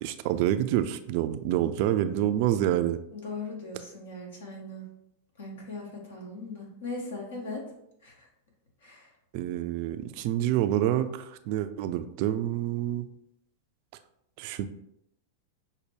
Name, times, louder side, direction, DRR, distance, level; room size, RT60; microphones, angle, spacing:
voice 1, 0.0-3.0 9.3-13.1 14.4-14.7, right 12 dB, 50° right, 10 dB, 0.3 m, -27 dB
voice 2, 3.1-4.8 5.4-7.6 8.0-8.3 8.8-9.1, left 3 dB, 70° left, -1 dB, 1.3 m, -39 dB
6.3 x 2.1 x 3.3 m, 0.78 s
figure-of-eight pair, 95°, 0 cm